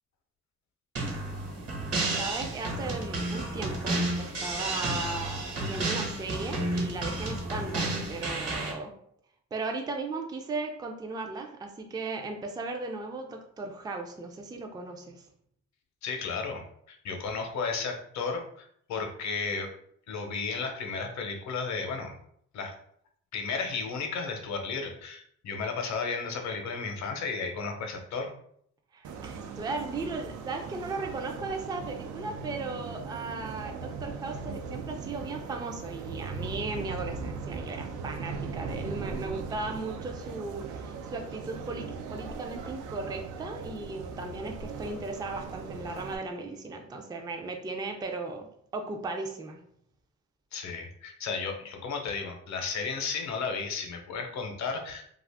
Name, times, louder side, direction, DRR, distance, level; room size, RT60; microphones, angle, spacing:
sound 1, 1.0-8.7, right 2 dB, 55° right, 1.2 m, -31 dB
voice 1, 2.2-8.9 9.5-15.3 28.9-49.6, right 3 dB, 15° right, 3 dB, 0.4 m, -36 dB
voice 2, 16.0-19.7 20.1-22.1 22.5-22.7 23.3-28.3 50.5-55.1, left 4 dB, 65° left, 4 dB, 0.7 m, -34 dB
sound 2, 29.0-46.2, right 5 dB, 80° right, 0.5 m, -39 dB
2.4 x 2.4 x 3.4 m, 0.68 s
cardioid pair, 90°, 30 cm